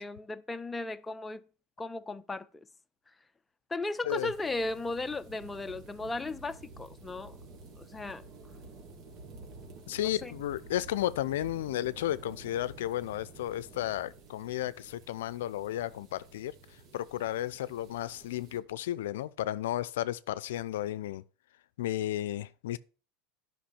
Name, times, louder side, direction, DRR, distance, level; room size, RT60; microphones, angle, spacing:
voice 1, 0.0-1.4 1.8-2.6 3.7-7.4 7.8-8.2 10.0-10.3, left 2 dB, 15° left, 0.7 m, -36 dB
sound 1, 4.1-18.6, right 3 dB, 50° right, 3.1 m, -51 dB
voice 2, 9.9-16.5 16.9-21.2 21.8-22.8, left 13 dB, 80° left, 0.5 m, -33 dB
10.0 x 5.9 x 7.1 m
hypercardioid pair, 105°, 0 cm